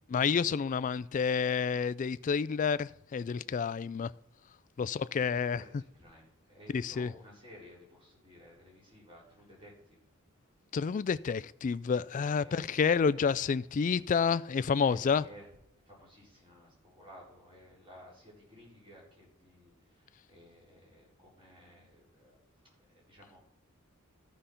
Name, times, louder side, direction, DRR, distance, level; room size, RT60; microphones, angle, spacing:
voice 1, 0.1-4.1 4.8-5.6 6.7-7.1 10.7-15.2, left 6 dB, 40° left, 0.3 m, -29 dB
voice 2, 4.9-10.0 12.4-13.3 14.8-15.5 15.8-22.4 22.9-23.4, left 1 dB, 25° right, 4.6 m, -55 dB
13.5 x 5.1 x 5.7 m
head